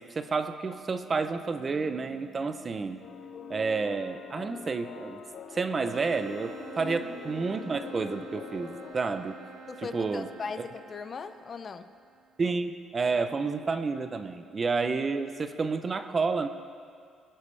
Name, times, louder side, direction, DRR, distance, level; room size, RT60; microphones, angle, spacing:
voice 1, 0.0-3.0 3.5-5.2 5.5-9.4 9.9-10.3 12.4-16.5, right 4 dB, 25° right, 9 dB, 0.6 m, -30 dB
Harp, 1.2-4.5 4.9-6.0, left 2 dB, 15° left, 3.4 m, -58 dB
sound 1, 3.0-8.9, left 5 dB, 55° left, 1.4 m, -43 dB
sound 2, 5.9-12.3, right 5 dB, 80° right, 2.0 m, -48 dB
voice 2, 9.7-11.9, left 5 dB, 35° left, 11 dB, 0.4 m, -39 dB
23.5 x 10.0 x 3.3 m, 2.2 s
cardioid pair, 150°, 0 cm